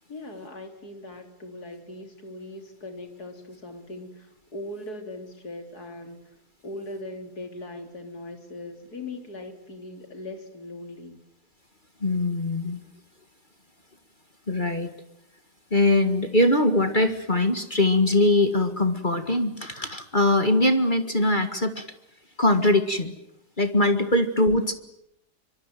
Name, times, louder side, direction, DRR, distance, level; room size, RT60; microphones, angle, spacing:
voice 1, 0.1-6.2 6.6-11.2, left 2 dB, 60° left, 6 dB, 3.9 m, -39 dB
voice 2, 12.0-12.8 14.5-14.9 15.7-21.9 22.4-23.1 23.6-24.7, left 1 dB, 30° left, 8 dB, 1.9 m, -22 dB
25.0 x 24.5 x 9.2 m, 0.78 s
omnidirectional pair, 1.9 m